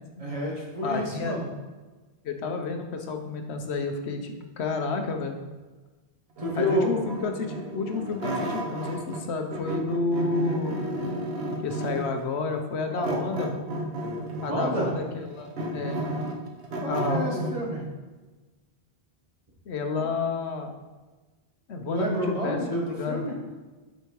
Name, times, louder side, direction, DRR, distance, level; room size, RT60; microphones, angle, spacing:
voice 1, 0.2-1.5 6.4-6.9 12.9-13.2 14.5-14.9 16.8-17.9 20.0-20.1 21.9-23.3, equal, 35° right, -3 dB, 1.6 m, -29 dB
voice 2, 0.8-1.4 2.2-5.4 6.6-10.8 11.6-13.7 14.4-16.0 16.9-17.3 19.7-20.7 21.7-23.3, left 3 dB, 90° left, 5 dB, 1.1 m, -30 dB
sound 1, 6.4-9.2 9.5-12.2 13.0-14.6 15.1-17.6, right 1 dB, 70° right, 1.2 m, -32 dB
8.1 x 4.2 x 4.7 m, 1.3 s
omnidirectional pair, 1.1 m